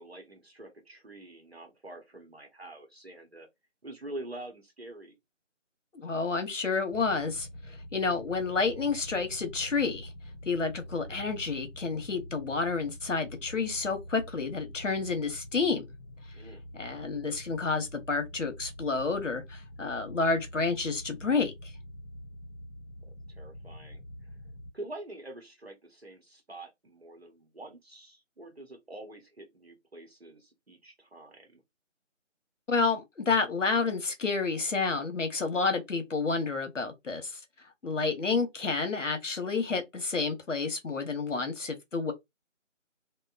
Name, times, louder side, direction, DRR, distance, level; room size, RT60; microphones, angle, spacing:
voice 1, 0.0-3.5 3.8-5.2 16.3-16.6 23.3-24.0 24.7-31.6 37.8-38.0, right 2 dB, 55° right, 0.8 m, -46 dB
voice 2, 5.9-10.1 10.5-15.8 16.8-21.5 32.7-37.4 37.8-42.1, left 4 dB, 75° left, 0.9 m, -30 dB
sound 1, 6.9-24.7, left 1 dB, 35° left, 1.0 m, -46 dB
2.9 x 2.1 x 2.3 m
figure-of-eight pair, 170°, 38 cm